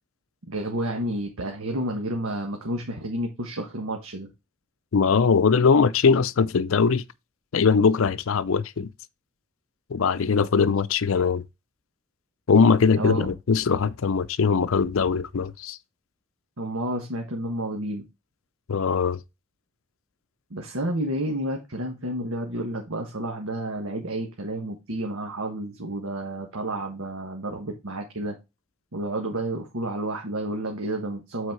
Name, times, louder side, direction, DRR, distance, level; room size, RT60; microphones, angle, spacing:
voice 1, 0.5-4.3 13.0-13.3 16.6-18.0 20.5-28.4 28.9-31.5, right 1 dB, 80° right, 1.3 m, -30 dB
voice 2, 4.9-7.0 7.5-8.9 9.9-11.4 12.5-15.8 18.7-19.2, left 5 dB, 70° left, 0.5 m, -21 dB
8.1 x 4.2 x 4.6 m
head